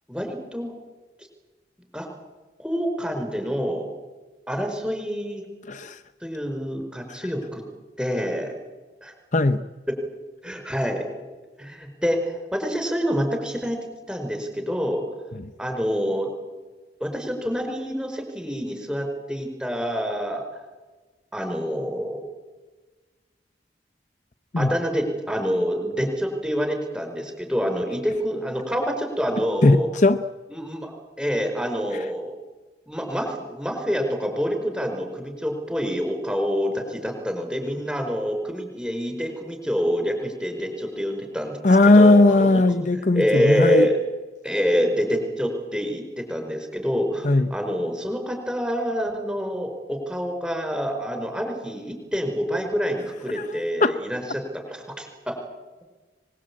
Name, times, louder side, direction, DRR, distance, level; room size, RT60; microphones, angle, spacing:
voice 1, 0.1-0.7 1.9-2.1 2.6-3.9 4.5-5.4 6.2-7.6 8.0-8.5 9.0-9.1 9.9-10.0 10.4-11.1 11.6-13.8 14.1-15.0 15.6-16.3 17.0-20.4 21.3-22.2 24.6-29.9 30.5-32.3 32.9-41.6 41.8-42.6 42.9-44.0 44.4-55.4, equal, 5° right, 5.0 m, -27 dB
voice 2, 5.7-6.0 9.3-9.6 24.5-24.7 29.6-30.2 41.6-43.9 47.2-47.5 53.3-53.4 53.8-53.9, left 2 dB, 45° left, 0.8 m, -17 dB
24.0 x 21.5 x 8.6 m
head